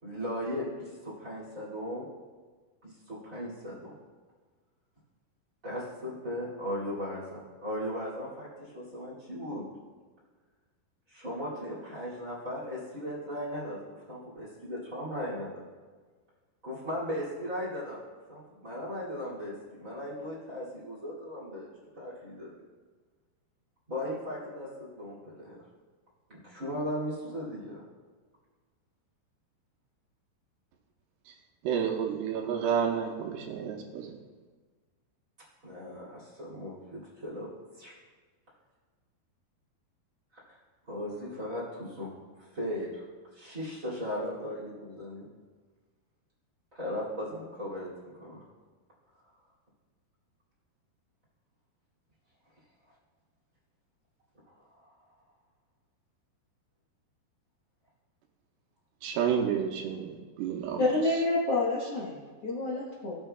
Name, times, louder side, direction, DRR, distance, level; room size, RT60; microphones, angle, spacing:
voice 1, 0.0-2.1 2.8-3.9 5.6-9.6 11.1-15.6 16.6-18.0 18.3-21.7 22.0-22.5 23.9-25.6 26.3-27.8 35.6-37.5 37.8-37.9 40.5-40.6 40.9-42.1 42.5-43.1 43.3-45.3 46.7-48.4, equal, 25° right, -7 dB, 2.1 m, -37 dB
voice 2, 31.6-34.2 59.0-60.8, right 8 dB, 85° right, 1 dB, 2.9 m, -30 dB
voice 3, 60.8-63.2, left 2 dB, 85° left, -6 dB, 1.3 m, -28 dB
17.0 x 7.3 x 2.3 m, 1.4 s
omnidirectional pair, 4.8 m